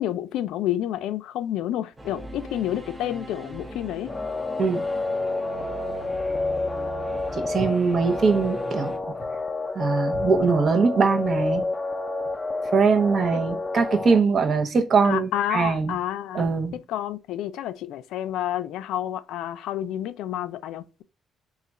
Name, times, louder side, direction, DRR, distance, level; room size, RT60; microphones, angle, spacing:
voice 1, 0.0-4.1 13.3-13.4 15.0-16.5 16.9-21.0, left 12 dB, 90° left, 0.4 m, -29 dB
Singing / Musical instrument, 2.0-9.0, right 1 dB, 20° right, 0.8 m, -39 dB
sound 1, 4.1-14.2, left 2 dB, 20° left, 0.5 m, -29 dB
voice 2, 7.3-8.9 9.7-11.6 12.7-16.0 16.3-16.7, right 4 dB, 50° right, 0.8 m, -22 dB
3.5 x 2.4 x 3.9 m
cardioid pair, 90°, 0 cm